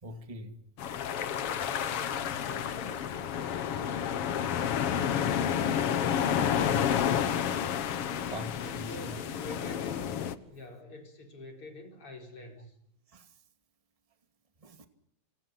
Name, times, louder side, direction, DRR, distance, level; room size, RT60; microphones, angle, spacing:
voice 1, 0.0-0.6 8.2-9.2 13.1-13.3 14.6-14.9, equal, 15° right, 1.5 m, -43 dB
sound 1, 0.8-10.3, left 8 dB, 60° left, 1.5 m, -30 dB
voice 2, 1.0-4.7 8.6-10.1 10.4-12.8, left 3 dB, 35° left, 5.8 m, -47 dB
29.5 x 26.5 x 6.0 m
omnidirectional pair, 4.2 m